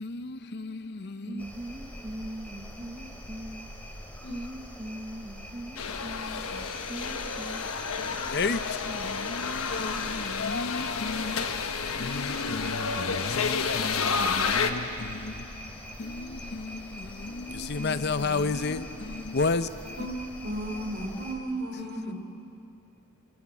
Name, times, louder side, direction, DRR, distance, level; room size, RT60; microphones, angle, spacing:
voice 1, 0.0-1.4 4.3-4.4 8.3-8.6 8.9-11.4 12.0-15.3 16.0-16.8 17.2-19.7 21.8-21.9, left 3 dB, 50° left, 0.7 m, -32 dB
voice 2, 1.3-4.0 4.3-7.7, right 1 dB, 25° right, 1.1 m, -41 dB
sound 1, 1.4-21.3, equal, 5° left, 3.1 m, -43 dB
sound 2, 5.8-14.7, left 5 dB, 80° left, 1.3 m, -30 dB
voice 3, 20.0-22.1, right 1 dB, 50° right, 3.7 m, -34 dB
23.5 x 23.0 x 8.7 m
head